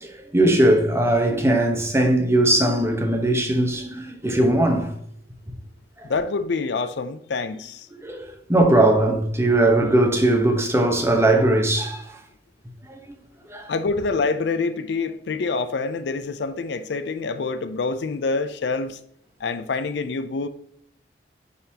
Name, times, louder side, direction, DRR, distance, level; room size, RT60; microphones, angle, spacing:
voice 1, 0.0-4.9 8.0-12.2 12.9-13.2 13.5-13.7, right 1 dB, 15° right, 0.9 m, -20 dB
voice 2, 6.0-7.9 13.7-19.0 19.4-20.5, left 4 dB, 75° left, 0.4 m, -26 dB
10.0 x 3.9 x 2.8 m
head